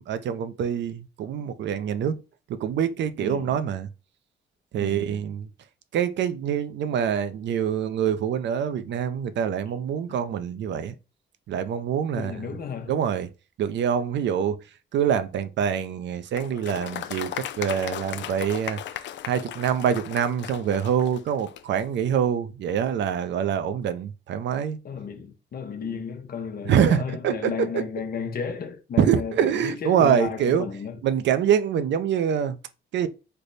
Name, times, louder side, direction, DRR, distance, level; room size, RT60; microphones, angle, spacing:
voice 1, 0.0-2.2 2.5-3.9 4.7-5.5 5.9-10.9 11.5-12.5 12.9-13.3 13.6-14.6 14.9-24.8 26.7-27.8 29.0-30.6 31.0-32.6 32.9-33.1, right 8 dB, 65° right, 0.5 m, -25 dB
voice 2, 3.2-3.6 4.8-5.2 12.1-12.9 24.8-31.0, left 6 dB, 50° left, 0.8 m, -33 dB
Applause, 16.3-21.9, left 11 dB, 65° left, 0.4 m, -36 dB
3.3 x 2.1 x 3.9 m
cardioid pair, 90°, 20 cm